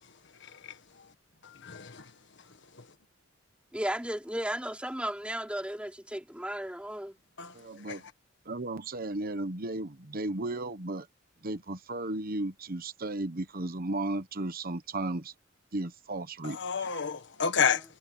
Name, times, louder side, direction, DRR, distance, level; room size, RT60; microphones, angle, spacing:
voice 1, 1.6-2.0 7.4-7.5 7.9-8.0 16.4-17.8, left 6 dB, 60° left, 1.6 m, -29 dB
voice 2, 3.7-7.2 17.7-17.8, right 1 dB, 5° right, 3.4 m, -35 dB
voice 3, 7.5-8.0 8.5-11.1 11.4-15.3 15.7-16.9, right 2 dB, 45° right, 1.1 m, -35 dB
head